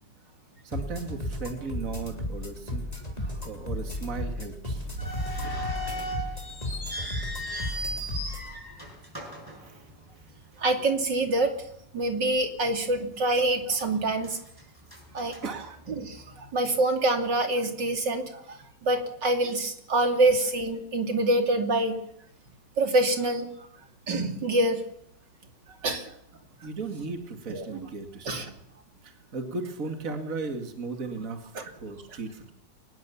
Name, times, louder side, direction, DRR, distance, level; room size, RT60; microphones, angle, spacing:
voice 1, 0.6-2.8 3.2-4.9 9.6-9.8 15.4-15.8 26.6-28.5 29.0-32.5, right 4 dB, 45° right, 6 dB, 2.6 m, -36 dB
sound 1, 0.7-8.5, left 1 dB, 20° left, 3.8 m, -34 dB
sound 2, 5.0-10.3 10.6-10.7 11.4-11.6 12.1-12.2 12.8-13.4 13.7-16.2, equal, 10° right, 7.6 m, -37 dB
voice 2, 5.0-5.7 10.6-11.7 11.9-14.4 15.1-15.4 16.0-22.0 22.8-23.7 24.1-24.8 25.8-26.1 27.5-27.9 28.2-28.5 31.5-31.6, right 2 dB, 70° right, 6 dB, 3.4 m, -26 dB
24.0 x 20.5 x 7.2 m, 0.73 s
omnidirectional pair, 2.0 m